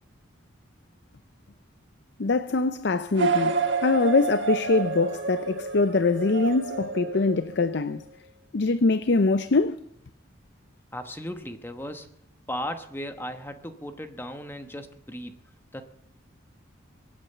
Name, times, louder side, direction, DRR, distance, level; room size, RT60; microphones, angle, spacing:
voice 1, 2.2-3.6 3.8-8.0 8.5-9.8, left 3 dB, 55° left, 0.5 m, -23 dB
sound 1, 3.1-8.0, right 4 dB, 70° right, 1.4 m, -29 dB
voice 2, 10.9-12.1 12.5-15.4 15.7-15.8, equal, 10° left, 1.1 m, -36 dB
24.0 x 8.8 x 6.8 m
head